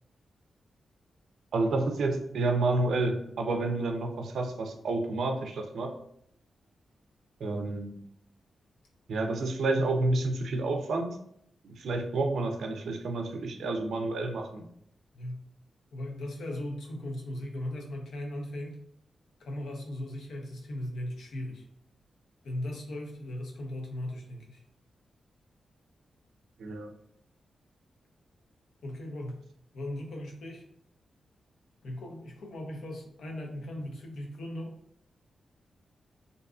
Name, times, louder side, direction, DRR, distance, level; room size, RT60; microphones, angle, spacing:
voice 1, 1.5-5.9 7.4-8.0 9.1-11.2 11.6-14.7 26.6-26.9, right 2 dB, 75° right, 5 dB, 0.4 m, -29 dB
voice 2, 15.9-18.8 19.4-21.6 22.4-24.6 28.8-29.4 29.7-30.6 31.8-34.7, left 1 dB, 80° left, 1 dB, 0.5 m, -38 dB
2.5 x 2.3 x 2.4 m, 0.70 s
wide cardioid pair, 155°, 0 cm